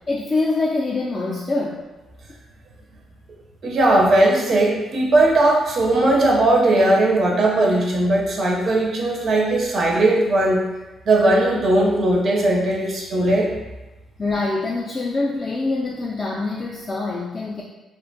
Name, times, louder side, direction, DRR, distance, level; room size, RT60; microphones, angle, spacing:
voice 1, 0.1-1.8 14.2-17.6, left 3 dB, 30° left, -4 dB, 0.3 m, -24 dB
voice 2, 3.6-10.6 11.1-13.5, right 1 dB, 55° right, -1 dB, 0.4 m, -18 dB
2.5 x 2.2 x 2.5 m, 1.1 s
cardioid pair, 90°, 0 cm